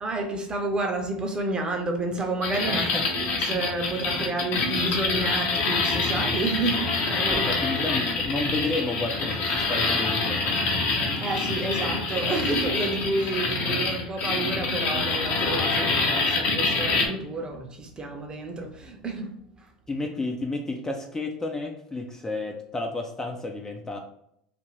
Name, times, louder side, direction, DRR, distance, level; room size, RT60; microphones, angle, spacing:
voice 1, 0.0-2.8 3.5-7.5 11.2-19.4, right 2 dB, 25° right, 0.7 m, -30 dB
sound 1, 2.4-17.1, left 3 dB, 55° left, 0.8 m, -26 dB
voice 2, 2.7-3.0 7.3-10.6 19.9-24.0, left 2 dB, 15° left, 0.4 m, -31 dB
2.6 x 2.5 x 3.0 m
hypercardioid pair, 80°, 4 cm